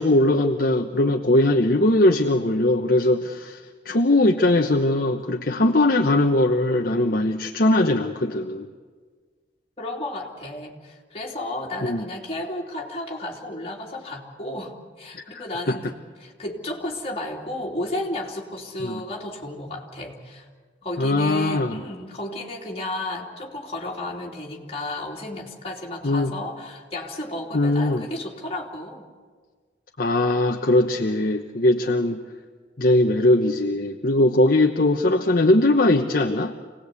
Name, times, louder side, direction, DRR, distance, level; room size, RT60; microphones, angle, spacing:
voice 1, 0.0-8.7 11.8-12.1 15.3-15.4 15.7-15.8 18.8-19.0 21.0-21.8 26.0-26.3 27.5-28.0 30.0-32.2 32.8-36.5, left 1 dB, 50° left, 3 dB, 1.0 m, -20 dB
voice 2, 9.8-20.5 20.8-29.1, left 1 dB, 35° left, -2 dB, 3.2 m, -33 dB
26.5 x 19.0 x 8.3 m, 1.5 s
head